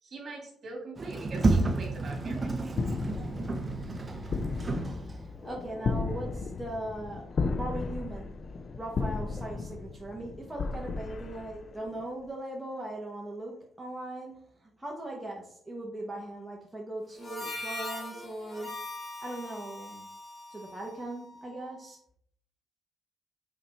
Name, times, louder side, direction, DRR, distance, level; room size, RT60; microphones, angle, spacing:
voice 1, 0.0-2.8, right 3 dB, 45° right, 1 dB, 2.6 m, -43 dB
Sliding door, 1.0-5.4, right 2 dB, 30° right, 0.8 m, -30 dB
sound 1, 2.7-12.0, left 4 dB, 45° left, 0.5 m, -35 dB
voice 2, 5.2-8.3 8.8-14.3 14.6-18.7 19.2-20.1 20.5-22.0, right 1 dB, 10° right, -2 dB, 1.3 m, -39 dB
Harmonica, 17.1-21.8, left 2 dB, 25° left, 2.0 m, -41 dB
5.8 x 4.6 x 4.2 m, 0.64 s
cardioid pair, 90°, 0 cm